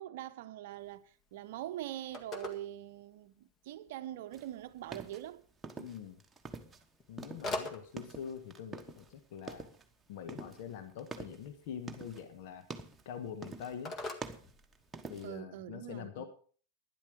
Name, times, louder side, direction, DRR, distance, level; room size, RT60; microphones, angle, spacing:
voice 1, 0.0-5.4 15.2-16.2, right 13 dB, 50° right, 0.8 m, -43 dB
Telephone, 0.8-15.3, left 2 dB, 25° left, 1.8 m, -48 dB
sound 1, 4.3-6.8 7.1-9.1 9.4-9.9 10.3-12.3 12.6-13.1 13.4-13.8 14.1-15.4, right 3 dB, 15° right, 1.2 m, -46 dB
voice 2, 5.8-6.2 7.1-9.7 10.1-12.7 13.0-13.9 15.1-16.2, left 8 dB, 50° left, 1.3 m, -44 dB
12.0 x 10.5 x 5.1 m
figure-of-eight pair, 90°, 0 cm